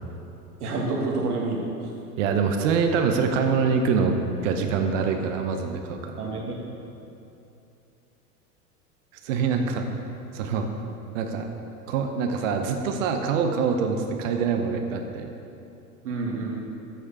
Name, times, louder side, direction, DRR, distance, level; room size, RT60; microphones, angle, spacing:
voice 1, 0.6-1.6 6.2-6.6 16.0-16.6, right 3 dB, 75° right, -2 dB, 1.8 m, -28 dB
voice 2, 2.2-4.2 4.4-6.2 9.2-9.9 10.3-10.7 11.1-11.5 11.9-15.3, right 5 dB, 55° right, 5 dB, 0.9 m, -25 dB
8.2 x 6.6 x 4.9 m, 2.7 s
hypercardioid pair, 95°, 46 cm